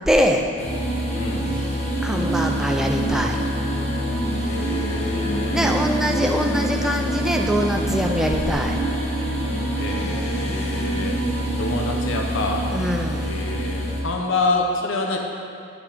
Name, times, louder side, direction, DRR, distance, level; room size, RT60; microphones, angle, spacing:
voice 1, 0.1-0.5 2.0-3.4 5.5-8.8 12.7-13.3, equal, ahead, 2 dB, 0.4 m, -23 dB
sound 1, 0.6-14.0, equal, 30° left, 1.1 m, -25 dB
voice 2, 1.1-1.5 4.5-5.8 9.7-11.2 11.6-12.7 13.2-15.2, left 2 dB, 60° left, 1 dB, 0.7 m, -27 dB
10.0 x 6.0 x 3.4 m, 2.5 s
head